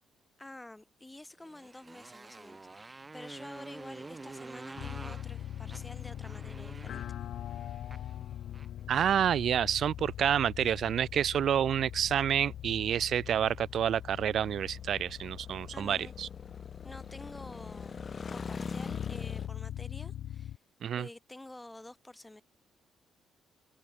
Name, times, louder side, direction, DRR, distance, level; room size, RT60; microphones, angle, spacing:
voice 1, 0.4-7.1 15.7-16.1 16.8-18.0 18.3-20.6 20.9-22.4, left 2 dB, 10° left, 3.5 m, -49 dB
Motorcycle, 1.4-8.8, right 3 dB, 25° right, 4.4 m, -48 dB
sound 1, 3.4-19.5, left 5 dB, 40° left, 1.2 m, -46 dB
sound 2, 4.8-20.6, left 11 dB, 75° left, 1.0 m, -42 dB
voice 2, 8.9-16.3 20.8-21.1, right 9 dB, 65° right, 0.3 m, -28 dB
cardioid pair, 90°, 0 cm